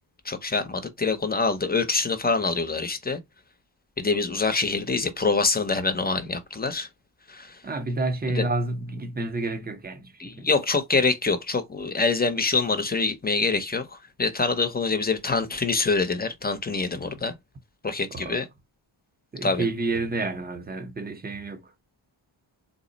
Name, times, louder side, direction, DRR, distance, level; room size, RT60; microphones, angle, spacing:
voice 1, 0.2-3.2 4.0-6.9 7.3-7.6 8.3-8.5 10.2-17.3 17.8-18.5 19.4-19.7, left 4 dB, 20° left, 0.7 m, -25 dB
voice 2, 7.6-10.5 18.1-18.4 19.3-21.6, right 2 dB, 20° right, 0.7 m, -29 dB
3.8 x 2.0 x 3.8 m
wide cardioid pair, 115°, 47 cm